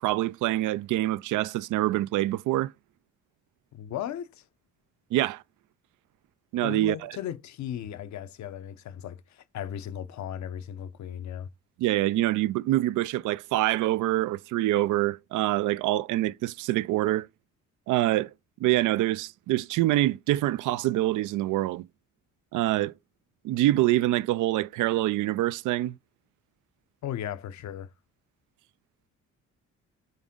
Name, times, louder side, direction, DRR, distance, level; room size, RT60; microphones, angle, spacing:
voice 1, 0.0-2.7 5.1-5.4 6.5-7.1 11.8-17.3 17.9-18.3 18.6-21.9 22.5-22.9 23.4-26.0, right 16 dB, 85° right, 0.5 m, -25 dB
voice 2, 3.7-4.4 6.6-11.5 27.0-27.9, left 10 dB, 70° left, 0.9 m, -36 dB
8.9 x 3.6 x 3.8 m
cardioid pair, 90°, 30 cm